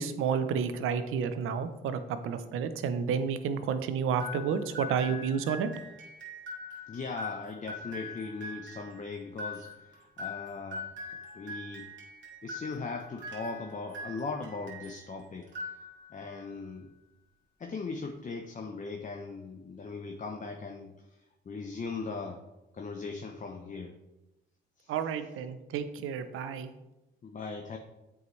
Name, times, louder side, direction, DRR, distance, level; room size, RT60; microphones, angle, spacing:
voice 1, 0.0-5.7 24.9-26.7, right 6 dB, 80° right, 10 dB, 0.7 m, -31 dB
sound 1, 4.2-15.1 15.4-16.3, left 2 dB, 65° right, 2.0 m, -43 dB
voice 2, 6.9-10.9 11.3-11.9 12.4-15.5 16.1-16.9 17.6-20.9 21.5-22.4 22.7-23.9 24.8-24.9 27.2-27.8, left 4 dB, 35° left, 3 dB, 0.8 m, -39 dB
8.0 x 4.8 x 3.2 m, 0.98 s
supercardioid pair, 65°, 21 cm